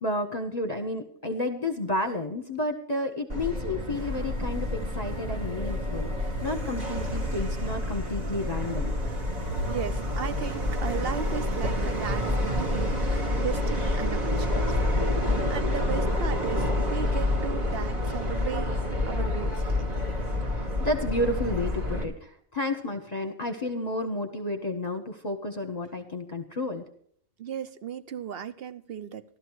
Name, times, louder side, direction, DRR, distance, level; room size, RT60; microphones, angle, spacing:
voice 1, 0.0-8.9 20.6-26.8, left 1 dB, 30° left, 1.4 m, -31 dB
Subway metro underground, 3.3-22.0, left 1 dB, 30° right, 1.9 m, -28 dB
sound 1, 3.9-13.3, right 3 dB, 75° right, 1.4 m, -40 dB
voice 2, 9.7-15.2 15.5-19.9 27.4-29.2, right 8 dB, 50° right, 0.9 m, -36 dB
13.5 x 13.0 x 4.7 m
omnidirectional pair, 1.4 m